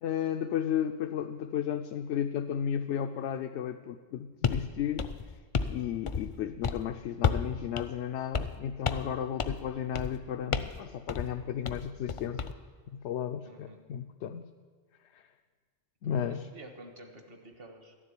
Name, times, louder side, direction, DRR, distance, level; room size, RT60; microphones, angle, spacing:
voice 1, 0.0-5.1 5.7-12.5 12.9-14.5 15.1-15.2 16.0-16.5, left 9 dB, 80° left, 7 dB, 0.9 m, -34 dB
sound 1, 4.4-4.6 5.0-5.8 6.1-6.4 6.6-6.8 7.2-7.5 7.8-7.9 8.3-8.6 8.8-9.1 9.4-9.6 9.9-10.2 10.5-10.8 11.1-11.3 11.6-12.5, left 6 dB, 40° left, 0.4 m, -31 dB
voice 2, 13.4-13.8 16.0-18.0, right 2 dB, 55° right, 5 dB, 1.7 m, -50 dB
13.0 x 7.4 x 9.8 m, 1.6 s
omnidirectional pair, 1.1 m